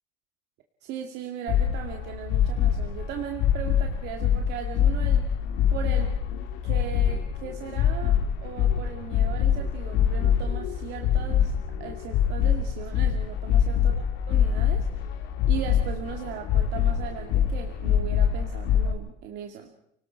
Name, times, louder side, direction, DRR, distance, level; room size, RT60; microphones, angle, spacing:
voice 1, 0.8-5.3 5.7-6.1 6.6-19.7, right 9 dB, 80° right, 3 dB, 2.2 m, -38 dB
sound 1, 1.5-18.9, left 8 dB, 85° left, 1.9 m, -24 dB
30.0 x 19.0 x 4.5 m, 0.73 s
cardioid pair, 125°, 17 cm